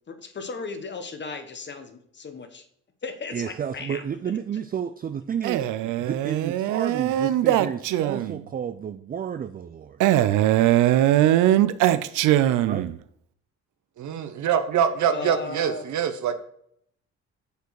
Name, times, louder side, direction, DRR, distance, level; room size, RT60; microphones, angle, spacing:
voice 1, 0.1-2.6 3.0-4.0 15.1-15.8, left 4 dB, 35° left, 8 dB, 1.1 m, -36 dB
voice 2, 3.3-10.0 12.6-12.9, right 8 dB, 30° right, 11 dB, 0.4 m, -31 dB
Male speech man speaking, 5.4-8.4 10.0-13.0, right 13 dB, 90° right, 0.5 m, -21 dB
voice 3, 14.0-16.4, right 8 dB, 70° right, 10 dB, 1.0 m, -24 dB
7.0 x 6.7 x 4.7 m, 0.69 s
cardioid pair, 90°, 30 cm